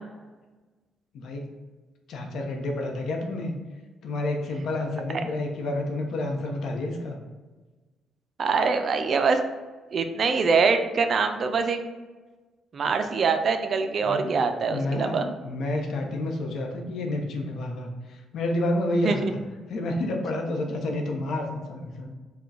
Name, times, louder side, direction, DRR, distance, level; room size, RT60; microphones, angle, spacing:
voice 1, 1.1-1.5 2.1-3.5 4.0-7.2 14.0-14.3 14.7-19.4 19.7-22.1, left 1 dB, 70° left, 2 dB, 0.8 m, -29 dB
voice 2, 8.4-9.4 9.9-11.8 12.7-15.3 19.0-19.3, right 5 dB, 50° right, 7 dB, 0.5 m, -24 dB
4.8 x 2.3 x 4.7 m, 1.3 s
cardioid pair, 90°, 0 cm